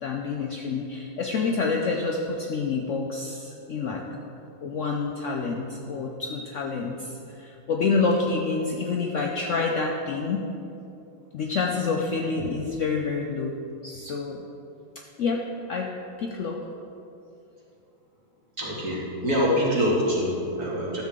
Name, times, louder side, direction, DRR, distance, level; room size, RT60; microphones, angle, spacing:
voice 1, 0.0-4.0 4.6-10.4 11.3-13.6 13.8-14.4 15.2-15.4 15.7-15.9 16.2-16.6, left 4 dB, 85° left, 0 dB, 0.6 m, -28 dB
voice 2, 18.6-21.0, equal, 40° right, -6 dB, 2.4 m, -25 dB
13.0 x 7.6 x 3.7 m, 2.8 s
omnidirectional pair, 2.1 m